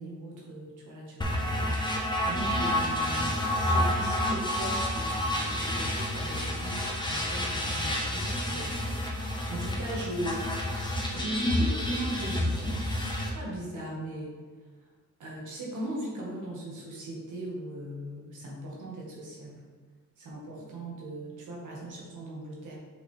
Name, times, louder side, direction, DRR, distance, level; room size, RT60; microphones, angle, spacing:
voice 1, 0.0-8.8 9.5-10.5 11.1-12.9 13.3-14.4 15.2-19.6 20.2-22.8, right 1 dB, 80° right, -4 dB, 1.7 m, -39 dB
sound 1, 1.2-13.3, left 1 dB, 15° left, 1.0 m, -29 dB
6.3 x 5.1 x 3.4 m, 1.5 s
wide cardioid pair, 130°, 30 cm